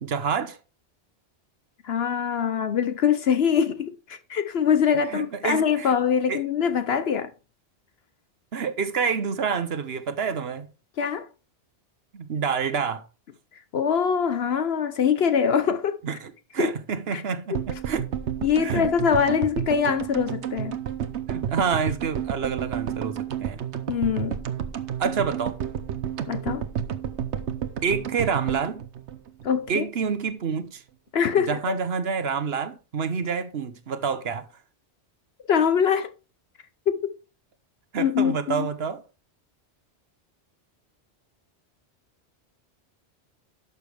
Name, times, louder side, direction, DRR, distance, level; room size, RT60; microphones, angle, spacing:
voice 1, 0.0-0.6 5.1-5.9 6.3-6.4 8.5-10.7 12.1-13.0 16.0-18.0 18.6-18.9 21.3-23.6 25.0-25.6 27.8-28.8 29.7-30.8 31.5-34.5 37.9-39.0, right 6 dB, 65° right, 1.1 m, -28 dB
voice 2, 1.8-7.3 11.0-11.3 13.7-16.0 16.6-16.7 17.1-17.2 18.4-20.8 23.9-24.4 26.3-26.6 29.4-29.9 31.1-31.8 35.5-36.1 36.9-37.0 38.0-38.7, left 7 dB, 70° left, 1.0 m, -23 dB
sound 1, 17.5-29.8 30.0-30.1 30.3-30.4, right 9 dB, 90° right, 1.1 m, -31 dB
11.5 x 6.9 x 3.4 m
omnidirectional pair, 1.1 m